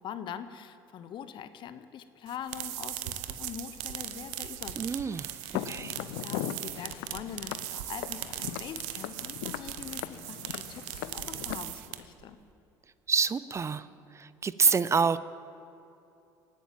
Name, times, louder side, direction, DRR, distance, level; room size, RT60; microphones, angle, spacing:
voice 1, 0.0-12.4, left 8 dB, 55° left, 12 dB, 0.9 m, -43 dB
sound 1, 2.3-12.2, right 13 dB, 80° right, 0.8 m, -39 dB
voice 2, 4.8-5.3 5.7-5.9 13.1-13.8 14.2-15.2, right 5 dB, 30° right, 16 dB, 0.5 m, -27 dB
Walk footsteps, 5.5-11.6, left 13 dB, 80° left, 0.5 m, -39 dB
18.5 x 9.0 x 7.5 m, 2.7 s
hypercardioid pair, 70°, 10 cm